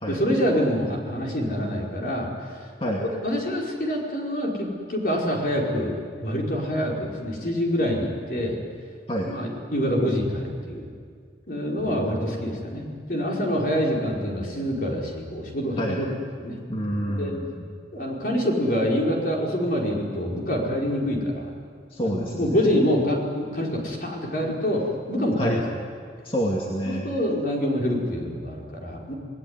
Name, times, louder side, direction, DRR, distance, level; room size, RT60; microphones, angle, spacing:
voice 1, 0.1-2.3 3.0-8.6 9.3-10.9 11.5-16.1 16.4-16.6 17.1-17.3 17.9-21.5 22.0-25.6 26.8-29.1, equal, 50° left, -1 dB, 5.1 m, -26 dB
voice 2, 11.8-12.6 15.8-16.0 16.7-17.7 21.9-22.7 25.4-25.6 26.2-27.0, equal, 30° left, -2 dB, 2.3 m, -28 dB
28.0 x 19.0 x 9.8 m, 2.1 s
head